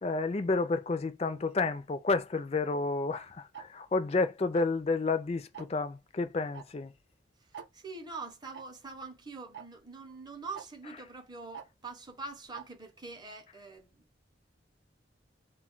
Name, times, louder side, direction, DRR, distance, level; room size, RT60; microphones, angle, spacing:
voice 1, 0.0-6.9, left 3 dB, 35° left, 0.4 m, -30 dB
Tick-tock, 3.5-3.7 4.5-4.8 5.5-5.8 6.5-6.7 6.9-7.0 7.5-7.7 8.5-8.6 9.5-9.7 10.5-10.7 11.5-11.7 12.5-12.7, right 8 dB, 70° right, 0.5 m, -44 dB
voice 2, 7.4-14.2, right 3 dB, 25° right, 0.6 m, -44 dB
2.2 x 2.2 x 3.7 m
head